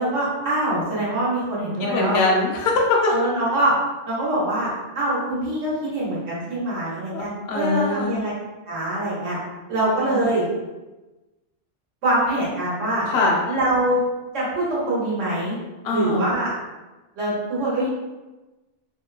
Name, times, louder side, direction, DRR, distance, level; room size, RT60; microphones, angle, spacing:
voice 1, 0.0-2.2 3.1-3.7 4.1-8.3 8.7-9.4 9.7-10.5 12.0-13.0 13.4-14.0 14.3-15.6 15.9-16.5 17.2-17.9, right 1 dB, 85° right, -8 dB, 1.2 m, -24 dB
voice 2, 1.8-3.1 7.1-7.2 7.5-8.2 9.8-10.3 13.1-13.4 15.8-16.2, left 3 dB, 65° left, -1 dB, 0.8 m, -22 dB
2.8 x 2.0 x 2.3 m, 1.1 s
omnidirectional pair, 1.3 m